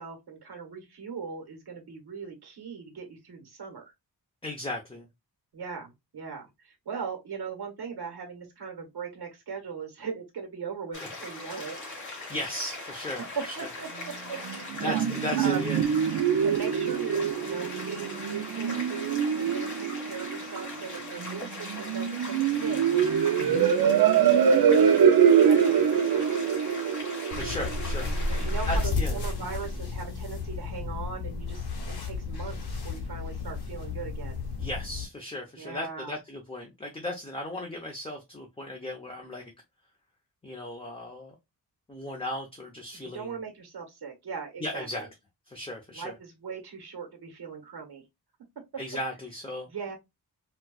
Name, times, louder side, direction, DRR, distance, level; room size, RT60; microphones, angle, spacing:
voice 1, 0.0-3.9 5.5-11.8 13.2-15.7 16.4-24.9 25.4-26.4 28.3-34.4 35.6-36.2 42.9-45.1 45.9-48.0 49.7-50.0, right 6 dB, 90° right, 1.3 m, -39 dB
voice 2, 4.4-5.1 12.3-13.7 14.8-15.8 23.4-23.7 27.4-28.1 28.7-29.2 34.6-39.4 40.4-41.3 41.9-43.4 44.6-45.1 45.5-46.1 48.8-49.7, left 1 dB, 15° left, 0.7 m, -36 dB
sound 1, 10.9-28.8, left 2 dB, 50° left, 1.8 m, -40 dB
sound 2, 14.4-28.4, right 8 dB, 65° right, 0.5 m, -24 dB
sound 3, 27.3-35.0, left 3 dB, 80° left, 1.1 m, -32 dB
4.3 x 2.3 x 2.3 m
wide cardioid pair, 130°, 38 cm